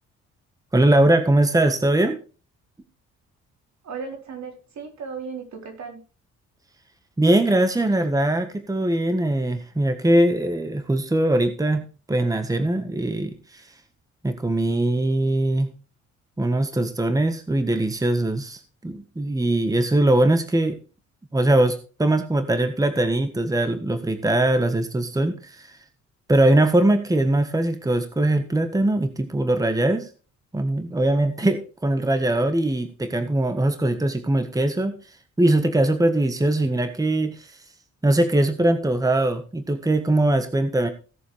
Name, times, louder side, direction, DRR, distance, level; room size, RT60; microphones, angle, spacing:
voice 1, 0.7-2.2 7.2-13.7 14.2-15.7 16.4-20.8 21.3-25.8 26.3-30.1 30.5-37.6 38.0-40.9, right 1 dB, 10° right, 8 dB, 1.5 m, -21 dB
voice 2, 3.8-6.0, right 5 dB, 65° right, 2 dB, 4.3 m, -35 dB
17.0 x 7.1 x 3.4 m, 0.35 s
cardioid pair, 90°, 30 cm